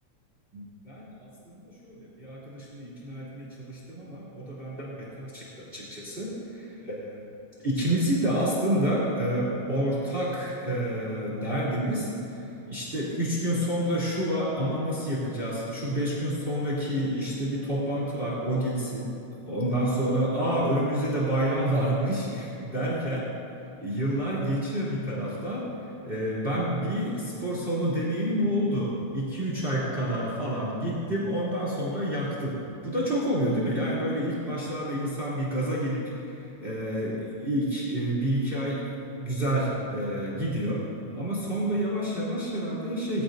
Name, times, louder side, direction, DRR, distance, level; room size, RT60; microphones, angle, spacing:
voice 1, 0.5-7.2 7.6-19.1 19.4-23.3 23.8-25.7 26.0-38.9 39.2-40.8 41.1-43.2, right 1 dB, 15° right, -7 dB, 3.1 m, -29 dB
20.5 x 16.0 x 2.7 m, 2.9 s
omnidirectional pair, 3.7 m